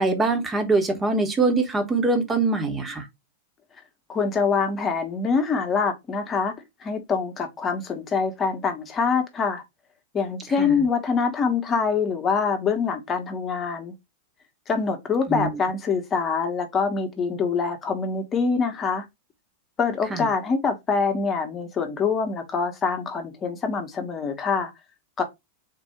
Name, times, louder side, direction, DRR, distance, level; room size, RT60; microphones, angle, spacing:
voice 1, 0.0-3.0 10.6-10.7 15.3-15.5 20.1-20.3, right 3 dB, 15° right, 1.1 m, -23 dB
voice 2, 4.1-6.5 6.8-9.6 10.1-13.9 14.7-19.0 19.8-24.7 25.2-25.3, left 5 dB, 25° left, 1.1 m, -25 dB
3.8 x 2.6 x 4.4 m
figure-of-eight pair, 90°, 0 cm